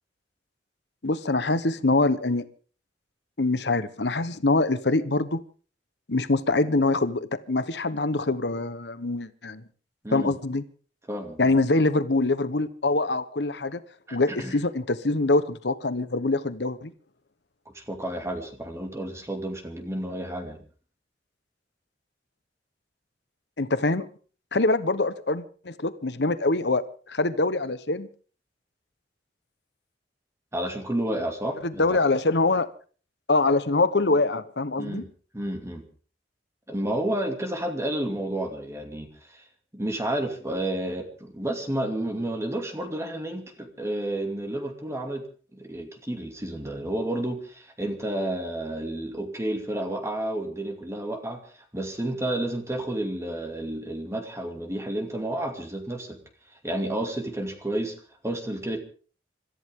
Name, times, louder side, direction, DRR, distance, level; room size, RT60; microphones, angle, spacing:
voice 1, 1.0-2.4 3.4-5.4 6.1-9.6 10.1-10.6 11.4-13.8 14.1-16.9 23.6-24.1 24.5-28.1 31.6-32.7 33.3-35.0, left 2 dB, 70° left, 13 dB, 1.2 m, -24 dB
voice 2, 11.1-11.6 14.1-14.6 17.7-20.6 30.5-32.0 34.8-35.0 35.3-35.8 36.7-39.4 39.7-45.2 45.5-51.4 51.7-56.2 56.6-57.9 58.2-58.8, right 1 dB, 15° right, 4 dB, 2.6 m, -31 dB
26.0 x 14.5 x 3.8 m, 0.41 s
head